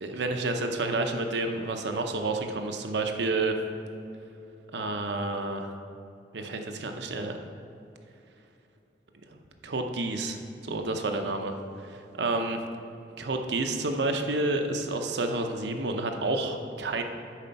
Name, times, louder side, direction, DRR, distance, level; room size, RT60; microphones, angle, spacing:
voice 1, 0.0-3.6 4.7-5.7 6.3-7.4 9.3-10.4 10.6-12.6 13.2-17.0, right 2 dB, 65° right, 5 dB, 0.7 m, -30 dB
9.2 x 4.4 x 5.7 m, 2.7 s
head